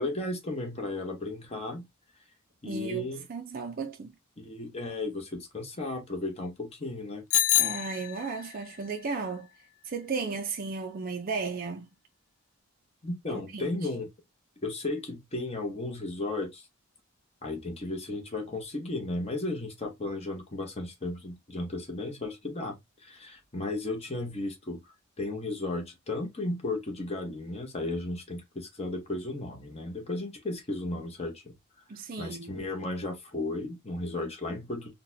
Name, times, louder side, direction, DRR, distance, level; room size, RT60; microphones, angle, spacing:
voice 1, 0.0-1.9 2.6-3.2 4.4-7.2 13.0-14.1 14.6-16.6 17.4-22.8 23.0-24.8 25.2-31.5 32.2-34.9, left 2 dB, 30° left, 1.0 m, -34 dB
voice 2, 2.6-4.1 7.6-9.5 9.8-11.9 13.3-13.9 31.9-32.5, right 4 dB, 40° right, 0.4 m, -35 dB
Bicycle bell, 7.3-8.6, left 12 dB, 75° left, 0.4 m, -26 dB
3.9 x 2.3 x 2.6 m
head